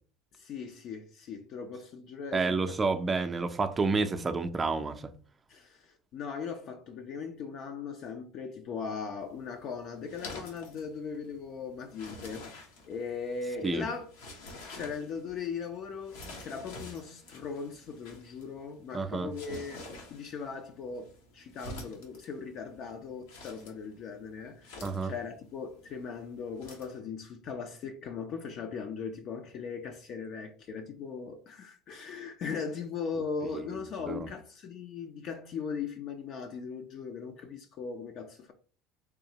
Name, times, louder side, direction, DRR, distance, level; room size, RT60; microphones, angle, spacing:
voice 1, 0.3-2.6 3.9-4.0 5.5-14.1 14.7-38.5, left 5 dB, 50° left, 0.5 m, -39 dB
voice 2, 2.3-5.1 13.6-13.8 18.9-19.3 24.8-25.1 34.1-34.3, right 4 dB, 20° right, 0.5 m, -29 dB
sound 1, 9.2-27.0, left 2 dB, 80° left, 1.1 m, -49 dB
3.6 x 3.2 x 2.9 m
supercardioid pair, 105°, 0 cm